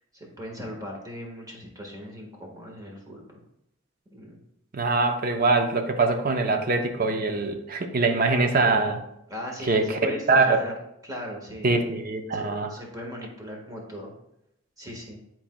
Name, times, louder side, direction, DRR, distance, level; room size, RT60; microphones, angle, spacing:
voice 1, 0.0-3.4 4.1-4.4 9.3-10.7 11.0-11.7 12.3-14.1 14.8-15.2, equal, 20° right, -1 dB, 1.4 m, -38 dB
voice 2, 4.7-9.0 9.7-10.6 11.6-12.7, right 3 dB, 50° right, 6 dB, 0.7 m, -23 dB
10.0 x 4.4 x 2.2 m, 0.81 s
head